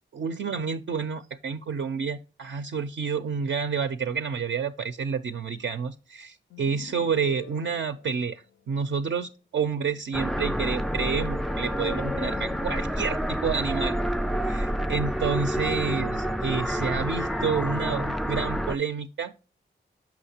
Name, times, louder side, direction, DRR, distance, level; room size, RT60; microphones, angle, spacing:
voice 1, 0.1-14.0 14.4-19.3, right 6 dB, 65° right, 0.4 m, -29 dB
sound 1, 6.5-8.9 11.3-14.6, left 7 dB, 75° left, 0.4 m, -47 dB
sound 2, 10.1-18.8, equal, ahead, 0.3 m, -28 dB
6.1 x 5.7 x 2.8 m
cardioid pair, 45°, 21 cm